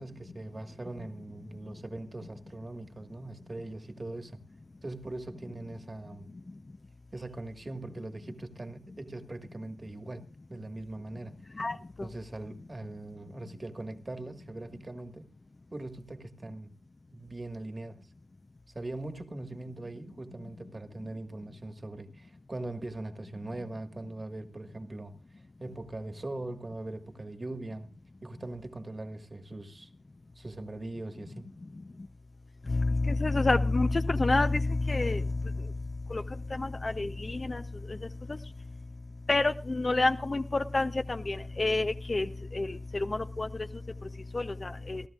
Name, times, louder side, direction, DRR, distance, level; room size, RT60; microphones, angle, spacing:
voice 1, 0.0-4.4 4.8-6.3 7.1-10.2 10.5-11.3 12.0-15.2 15.7-16.7 17.1-18.1 18.7-27.9 28.2-29.9 30.3-31.5, right 2 dB, 25° right, 1.6 m, -41 dB
voice 2, 11.6-12.1 32.7-35.5 36.1-36.2 36.5-37.6 39.3-43.5 44.3-45.0, left 2 dB, 30° left, 0.6 m, -28 dB
29.0 x 12.5 x 2.4 m
wide cardioid pair, 95°, 0 cm